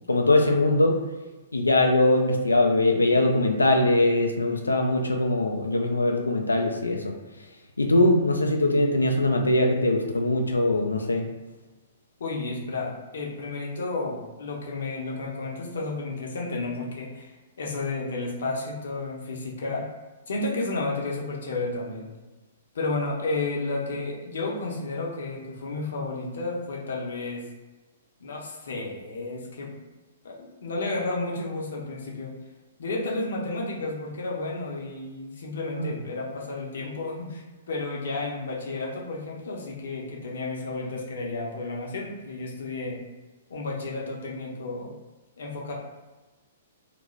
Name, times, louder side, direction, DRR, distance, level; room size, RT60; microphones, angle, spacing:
voice 1, 0.1-1.0 1.5-7.2 7.8-11.3 35.8-35.9, left 2 dB, 80° left, 2 dB, 0.3 m, -22 dB
voice 2, 12.2-17.3 17.6-19.8 20.3-22.1 22.7-27.4 28.2-29.7 30.2-32.3 32.8-43.0 43.5-44.9 45.4-45.7, left 3 dB, 60° left, -2 dB, 0.7 m, -32 dB
2.4 x 2.1 x 3.1 m, 1.2 s
figure-of-eight pair, 115°, 0 cm